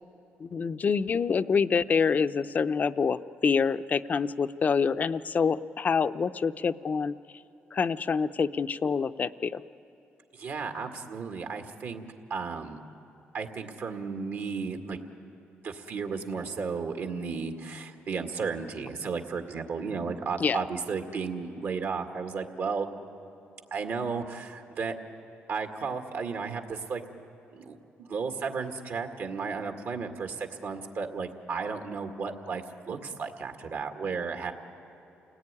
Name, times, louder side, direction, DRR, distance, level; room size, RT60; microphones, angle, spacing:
voice 1, 0.4-7.1 7.7-9.6 20.4-20.6, left 5 dB, 40° left, 12 dB, 0.6 m, -26 dB
voice 2, 10.3-12.0 12.3-12.8 13.3-15.0 15.6-22.9 23.7-25.0 25.5-27.0 27.5-34.5, right 5 dB, 65° right, 5 dB, 2.0 m, -34 dB
28.5 x 18.0 x 9.8 m, 2.9 s
cardioid pair, 110°, 4 cm